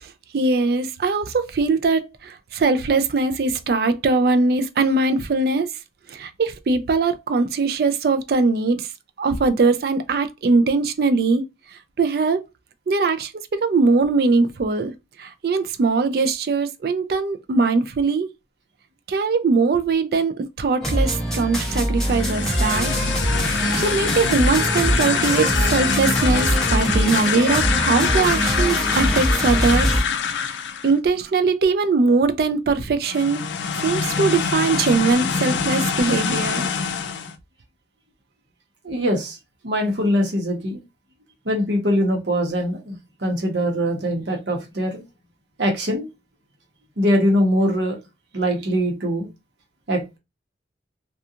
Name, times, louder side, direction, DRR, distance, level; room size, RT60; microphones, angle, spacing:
voice 1, 0.0-5.7 6.1-8.9 9.2-11.4 12.0-12.4 12.9-14.9 15.2-18.3 19.1-22.9 23.8-30.0 30.8-33.4 33.8-36.7, right 4 dB, 55° right, 0.3 m, -21 dB
sound 1, 20.8-30.0, equal, 5° left, 0.6 m, -23 dB
sound 2, 21.9-31.0 33.0-37.4, left 6 dB, 80° left, 0.4 m, -24 dB
voice 2, 38.8-39.4 39.6-40.8 41.4-45.0 45.6-46.1 47.0-48.0 48.3-49.3 49.9-50.0, equal, 75° right, 0.9 m, -22 dB
2.4 x 2.3 x 2.7 m
head